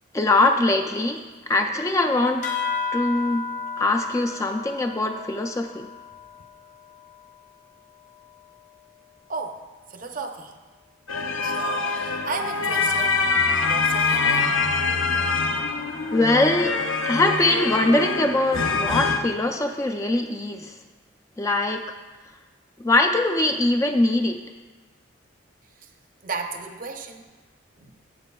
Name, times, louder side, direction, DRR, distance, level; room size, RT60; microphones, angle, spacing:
voice 1, 0.1-2.5 2.9-3.5 3.8-5.9 16.1-20.8 21.4-21.8 22.8-24.4, left 2 dB, 15° left, 4 dB, 0.3 m, -22 dB
sound 1, 2.4-7.4, left 5 dB, 40° left, 0.9 m, -33 dB
voice 2, 9.3-10.6 11.4-13.3 13.6-14.6 25.8-25.9 26.2-27.3 27.8-27.9, right 4 dB, 40° right, 5 dB, 0.6 m, -34 dB
sound 2, 11.1-19.2, left 4 dB, 85° left, 0.7 m, -24 dB
15.5 x 7.4 x 2.3 m, 1.3 s
head